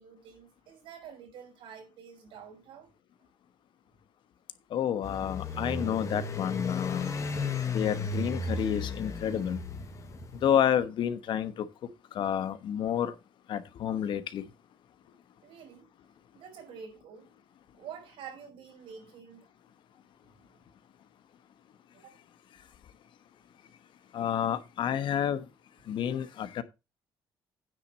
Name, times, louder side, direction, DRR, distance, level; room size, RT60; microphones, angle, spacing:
voice 1, 0.0-2.9 15.4-15.9 16.3-17.3 17.8-19.4 20.2-20.7 22.0-22.1, right 7 dB, 85° right, 5.1 m, -48 dB
voice 2, 4.7-7.1 7.7-9.6 10.4-11.5 12.2-13.1 13.5-14.4 24.1-25.4 25.9-26.6, left 9 dB, 70° left, 1.2 m, -29 dB
sound 1, 5.0-10.5, left 3 dB, 35° left, 1.6 m, -34 dB
9.6 x 4.1 x 7.3 m
cardioid pair, 110°, 9 cm